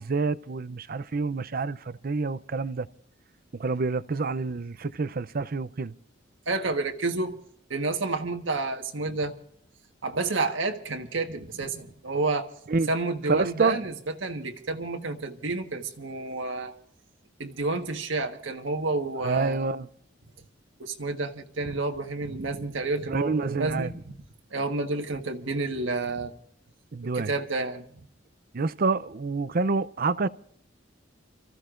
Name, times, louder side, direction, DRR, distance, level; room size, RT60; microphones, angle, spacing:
voice 1, 0.0-2.9 3.5-5.9 12.7-12.9 13.3-13.8 19.2-19.9 23.1-23.9 26.9-27.3 28.5-30.3, right 4 dB, 50° right, 0.6 m, -28 dB
voice 2, 6.5-7.4 7.7-9.4 10.0-12.5 12.9-13.9 14.2-16.7 17.4-19.7 20.8-24.1 24.5-26.3 27.1-27.8, right 3 dB, 90° right, 1.5 m, -30 dB
29.5 x 15.0 x 2.5 m
head